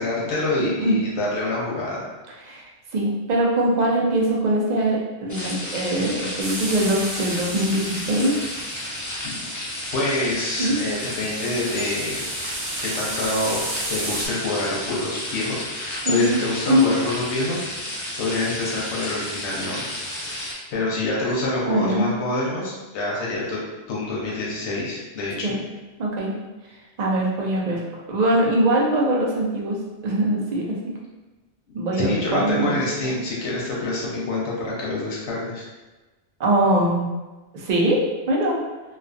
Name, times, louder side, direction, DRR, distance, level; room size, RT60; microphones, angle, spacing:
voice 1, 0.0-2.1 9.2-9.5 9.9-12.2 12.8-17.7 18.2-19.8 20.3-25.6 32.0-35.6, left 2 dB, 90° left, -4 dB, 0.9 m, -27 dB
voice 2, 2.4-8.4 10.6-10.8 16.1-16.4 16.7-16.9 21.7-22.1 25.4-25.6 26.0-26.3 27.0-29.8 30.0-30.8 31.7-32.8 36.4-37.1 37.5-38.0 38.3-38.6, right 1 dB, 50° right, -3 dB, 0.5 m, -22 dB
sound 1, 5.3-20.5, left 1 dB, 30° left, 0.3 m, -32 dB
sound 2, 6.4-8.9 10.9-14.3, right 2 dB, 80° right, 0.9 m, -33 dB
2.4 x 2.4 x 2.4 m, 1.2 s
omnidirectional pair, 1.1 m